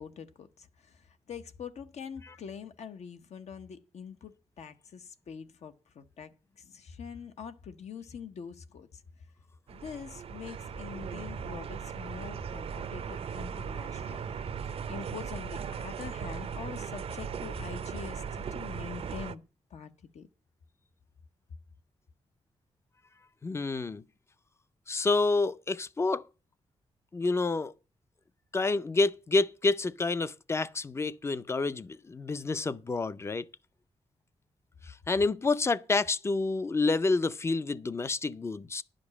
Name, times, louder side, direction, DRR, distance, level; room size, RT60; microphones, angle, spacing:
voice 1, 0.0-9.0 9.7-14.3 14.6-19.4 19.7-20.3, left 7 dB, 70° left, 0.8 m, -44 dB
sound 1, 9.7-19.3, right 7 dB, 55° right, 0.5 m, -38 dB
voice 2, 23.4-24.0 24.9-26.2 27.1-27.7 28.5-33.5 34.9-38.8, left 3 dB, 25° left, 0.4 m, -28 dB
10.5 x 5.2 x 8.3 m
wide cardioid pair, 135°, 12 cm